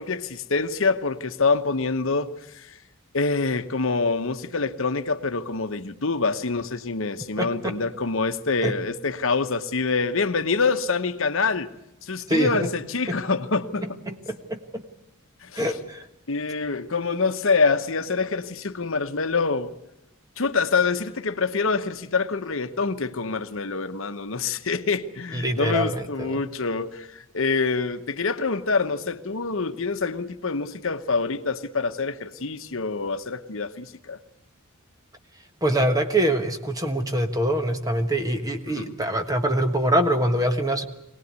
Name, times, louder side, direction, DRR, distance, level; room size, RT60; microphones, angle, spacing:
voice 1, 0.0-2.8 3.1-11.7 12.0-13.9 15.4-15.7 16.3-19.7 20.4-34.2 38.7-38.9, left 4 dB, 65° left, 10 dB, 1.0 m, -26 dB
voice 2, 7.4-7.8 8.6-8.7 12.3-12.7 13.1-13.2 13.8-14.8 15.5-16.1 25.3-26.4 35.6-40.8, right 1 dB, 15° right, 6 dB, 1.5 m, -24 dB
23.5 x 18.5 x 9.5 m, 0.84 s
head